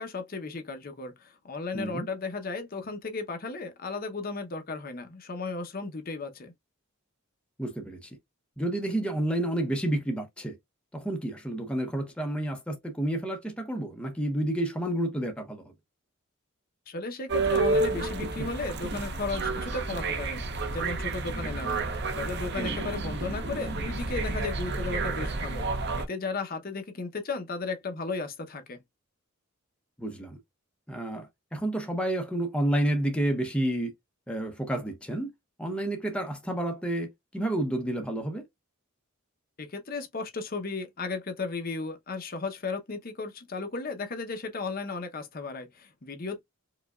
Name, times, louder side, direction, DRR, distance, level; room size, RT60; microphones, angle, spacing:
voice 1, 0.0-6.5 16.9-21.8 22.2-25.7 25.9-28.8 39.6-46.4, left 3 dB, 45° left, 0.7 m, -35 dB
voice 2, 1.7-2.1 7.6-8.1 8.6-10.6 10.9-15.6 22.6-22.7 30.0-30.4 30.9-33.9 34.3-35.3 35.6-38.4, right 1 dB, 5° left, 0.6 m, -30 dB
sound 1, 17.3-26.1, right 3 dB, 50° right, 0.6 m, -30 dB
4.9 x 2.2 x 2.2 m
head